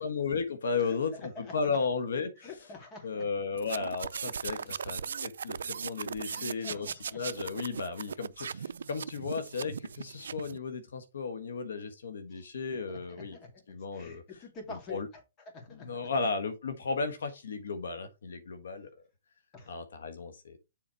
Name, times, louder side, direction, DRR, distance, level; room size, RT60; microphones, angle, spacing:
voice 1, 0.0-2.5 3.0-13.4 13.7-14.2 14.9-15.1 15.7-18.9 19.7-20.6, left 4 dB, 85° left, 1.4 m, -34 dB
voice 2, 2.4-3.2 4.5-4.7 6.3-7.2 12.3-12.4 12.7-13.6 13.9-15.2 15.5-16.1 19.5-19.7, left 3 dB, 25° left, 2.4 m, -47 dB
sound 1, 3.6-10.6, right 7 dB, 90° right, 0.4 m, -38 dB
7.2 x 4.2 x 4.5 m
hypercardioid pair, 160°, 0 cm